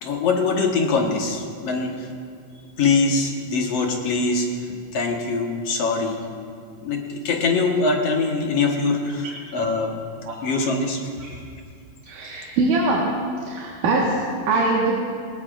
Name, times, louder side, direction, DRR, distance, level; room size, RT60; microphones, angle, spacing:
voice 1, 0.0-2.1 2.8-4.5 4.9-6.2 6.8-10.0 10.4-11.0, left 4 dB, 60° left, 1 dB, 2.1 m, -23 dB
voice 2, 12.1-13.1 13.4-14.9, right 3 dB, 80° right, -4 dB, 3.1 m, -22 dB
20.5 x 20.0 x 2.5 m, 2.2 s
omnidirectional pair, 3.8 m